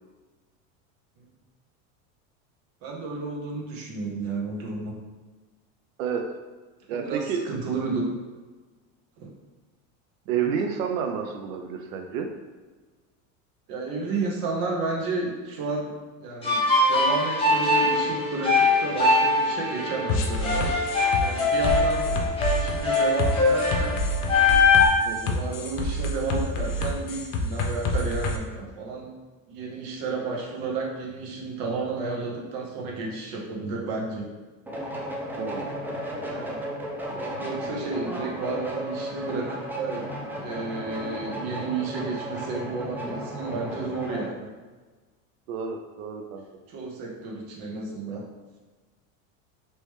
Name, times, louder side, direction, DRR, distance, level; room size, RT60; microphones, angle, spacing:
voice 1, 2.8-4.9 6.9-8.1 9.2-9.3 13.7-15.9 16.2-16.6 16.9-20.7 21.2-22.1 22.5-24.0 25.0-29.1 29.5-34.3 36.2-36.6 37.1-44.5 46.7-48.2, right 3 dB, 60° right, -1 dB, 1.0 m, -32 dB
voice 2, 6.0-6.4 6.9-7.4 10.3-12.3 25.0-25.4 35.4-35.7 45.5-46.4, right 7 dB, 90° right, 4 dB, 0.5 m, -30 dB
sound 1, 16.4-24.8, left 3 dB, 15° left, 1.0 m, -22 dB
sound 2, 20.1-28.4, left 1 dB, 60° left, 0.7 m, -28 dB
sound 3, 34.7-44.3, equal, 5° right, 0.3 m, -34 dB
3.2 x 3.0 x 3.1 m, 1.3 s
supercardioid pair, 115°, 40 cm